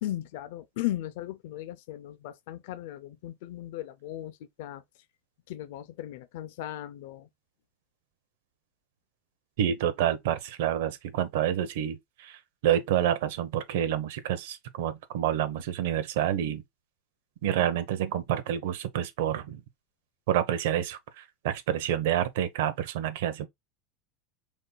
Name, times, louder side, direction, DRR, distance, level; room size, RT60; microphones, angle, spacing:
voice 1, 0.0-4.8 5.5-7.3, left 14 dB, 65° left, 0.6 m, -37 dB
voice 2, 9.6-16.6 17.4-19.6 20.3-23.5, right 11 dB, 70° right, 0.9 m, -28 dB
5.2 x 4.2 x 2.3 m
supercardioid pair, 165°, 0 cm